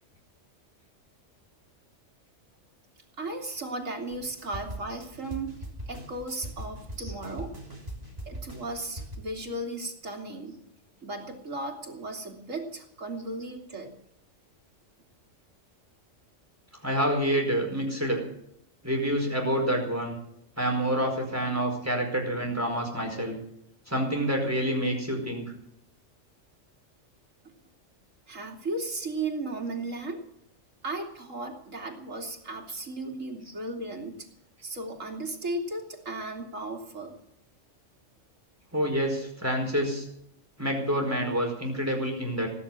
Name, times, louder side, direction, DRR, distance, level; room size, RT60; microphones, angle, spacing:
voice 1, 3.2-5.5 5.9-7.5 8.3-10.6 11.0-13.9 28.3-30.2 30.8-34.3 34.6-37.2, right 2 dB, 90° right, 2 dB, 3.1 m, -35 dB
sound 1, 4.1-9.2, right 1 dB, 30° right, 3.7 m, -40 dB
voice 2, 16.8-18.2 18.8-20.2 20.6-23.4 23.9-25.4 38.7-40.0 40.6-42.5, right 1 dB, 10° right, 1 dB, 4.8 m, -27 dB
18.5 x 9.9 x 7.4 m, 0.74 s
omnidirectional pair, 1.3 m